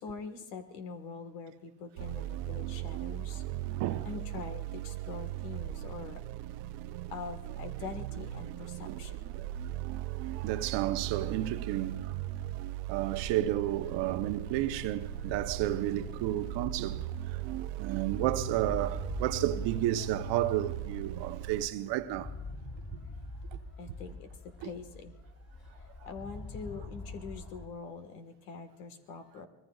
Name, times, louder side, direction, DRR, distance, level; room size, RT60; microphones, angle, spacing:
voice 1, 0.0-3.4 4.0-6.2 7.1-9.5 23.8-25.2 25.8-29.5, left 5 dB, 85° left, 1.6 m, -44 dB
sound 1, 2.0-21.7, right 14 dB, 90° right, 0.6 m, -38 dB
voice 2, 3.8-4.1 8.9-9.0 9.4-9.5 9.9-10.1 10.3-12.2 12.9-17.4 17.7-22.3 23.5-23.6, right 13 dB, 65° right, 1.0 m, -32 dB
sound 2, 9.7-27.7, left 2 dB, 30° left, 3.7 m, -46 dB
24.5 x 20.0 x 2.4 m
supercardioid pair, 80°, 45 cm